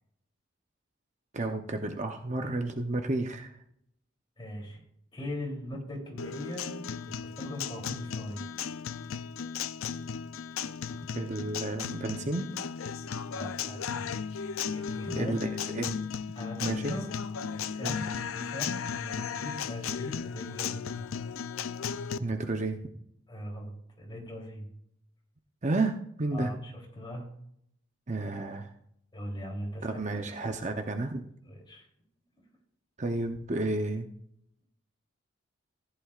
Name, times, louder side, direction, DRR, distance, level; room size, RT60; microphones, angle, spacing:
voice 1, 1.3-3.5 11.1-12.5 15.2-16.0 16.6-16.9 17.8-18.0 22.2-22.8 25.6-26.5 28.1-28.7 29.8-31.2 33.0-34.1, right 2 dB, 35° right, 5 dB, 0.7 m, -31 dB
voice 2, 4.4-4.8 5.1-8.6 13.3-14.1 14.7-15.4 16.3-17.1 17.5-21.0 23.3-24.7 26.3-27.3 29.1-30.0 31.4-31.8, equal, 20° left, -1 dB, 3.2 m, -40 dB
Guitar, 6.2-22.2, left 6 dB, 85° left, 0.5 m, -35 dB
14.5 x 11.0 x 2.4 m, 0.72 s
head